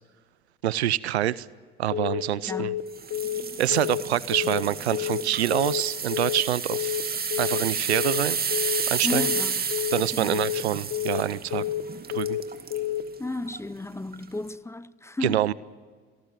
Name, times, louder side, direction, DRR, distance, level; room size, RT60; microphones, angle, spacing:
voice 1, 0.6-1.5 1.8-2.7 3.6-7.0 7.4-8.4 8.9-9.3 9.9-11.6 12.1-12.4 15.2-15.5, right 12 dB, 85° right, 0.6 m, -26 dB
Telephone, 1.9-2.2 2.5-2.8 3.1-3.4 3.7-4.0 4.3-4.6 4.9-5.2 5.5-5.8 6.1-6.4 6.7-7.0 7.3-7.6 7.9-8.2 8.5-8.8 9.1-9.4 9.7-10.0 10.3-10.6 10.9-11.2 11.5-11.8 12.1-12.4 12.7-13.0, left 13 dB, 45° left, 1.4 m, -29 dB
voice 2, 2.4-2.9 9.0-9.7 10.1-10.4 13.2-15.4, left 2 dB, 10° left, 0.8 m, -33 dB
sound 1, 3.0-12.9 13.4-13.6 14.1-14.2, right 6 dB, 30° right, 2.4 m, -31 dB
28.5 x 18.5 x 7.5 m
hypercardioid pair, 60°, 32 cm